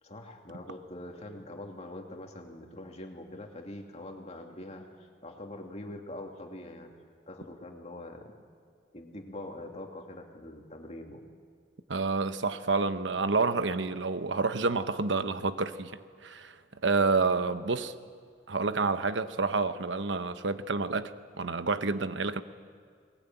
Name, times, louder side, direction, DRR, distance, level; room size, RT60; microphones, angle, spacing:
voice 1, 0.0-7.0 7.3-8.3 8.9-11.3 17.8-17.9, left 1 dB, 35° left, 2.5 m, -44 dB
voice 2, 11.9-16.6 16.8-17.9 18.5-21.1 21.4-22.4, right 3 dB, 80° right, 1.0 m, -29 dB
22.0 x 20.5 x 9.1 m
head